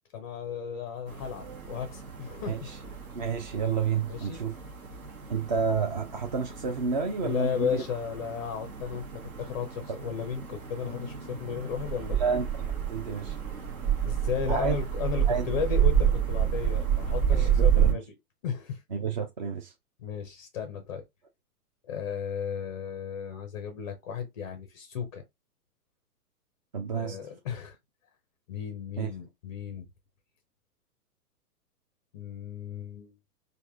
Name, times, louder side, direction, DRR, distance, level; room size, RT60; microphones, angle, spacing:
voice 1, 0.1-2.7 4.1-4.4 7.2-9.1 9.4-12.2 14.0-18.0 18.4-18.8 20.0-21.0 21.9-25.2 26.9-27.8 28.5-29.9 32.1-33.1, left 7 dB, 25° left, 0.5 m, -34 dB
sound 1, 1.1-17.9, right 9 dB, 60° right, 1.2 m, -30 dB
voice 2, 2.5-2.8 3.2-4.5 5.3-7.8 12.2-13.4 14.5-14.8 15.3-15.4 17.3-18.0 18.9-19.7 26.7-27.2 29.0-29.1, right 5 dB, 30° right, 0.4 m, -30 dB
4.5 x 2.5 x 2.5 m
figure-of-eight pair, 115°, 47 cm